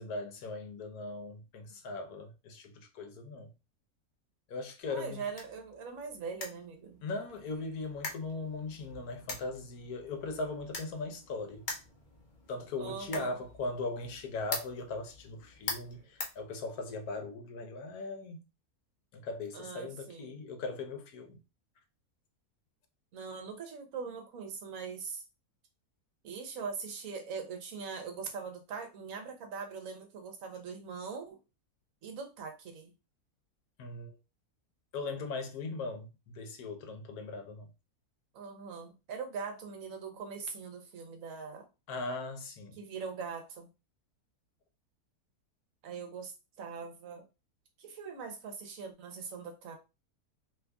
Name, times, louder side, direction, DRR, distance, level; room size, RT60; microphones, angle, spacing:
voice 1, 0.0-3.5 4.5-5.2 7.0-11.6 12.5-18.4 19.1-21.4 33.8-34.2 34.9-37.7 41.9-42.8, left 3 dB, 75° left, 1.3 m, -39 dB
voice 2, 4.9-7.0 12.8-13.4 19.5-20.4 23.1-25.2 26.2-31.4 32.0-32.9 38.3-41.7 42.8-43.7 45.8-47.3 47.8-49.8, right 5 dB, 65° right, 1.2 m, -41 dB
sound 1, 5.2-17.1, left 3 dB, 40° left, 0.7 m, -45 dB
3.1 x 2.5 x 3.4 m
omnidirectional pair, 1.6 m